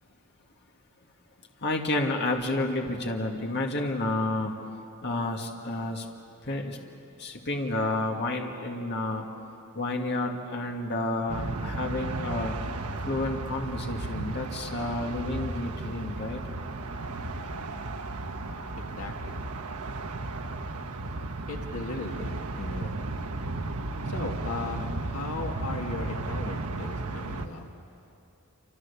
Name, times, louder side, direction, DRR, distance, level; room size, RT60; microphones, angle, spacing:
voice 1, 1.6-4.5 5.0-6.1 6.4-6.8 7.2-9.3 9.7-12.6 13.1-16.4, left 2 dB, 50° left, 1 dB, 2.0 m, -30 dB
sound 1, 11.3-27.5, right 2 dB, 80° right, 1.2 m, -34 dB
voice 2, 19.0-19.4 21.5-23.0 24.1-27.7, left 3 dB, 75° left, 2 dB, 1.9 m, -37 dB
28.0 x 26.5 x 7.0 m, 2.8 s
head